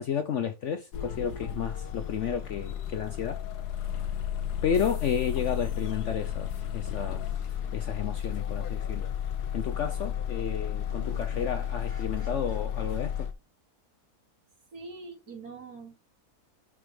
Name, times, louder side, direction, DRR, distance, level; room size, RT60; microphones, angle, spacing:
voice 1, 0.0-3.4 4.6-7.2 7.7-9.1 9.5-13.3, left 7 dB, 60° left, 0.9 m, -32 dB
sound 1, 0.9-13.3, left 9 dB, 80° left, 1.5 m, -33 dB
sound 2, 8.5-8.6 9.1-9.5 10.0-10.1 10.3-13.3, right 2 dB, 35° right, 2.7 m, -53 dB
voice 2, 14.7-16.1, right 3 dB, 75° right, 2.9 m, -43 dB
6.9 x 5.4 x 4.8 m
omnidirectional pair, 1.7 m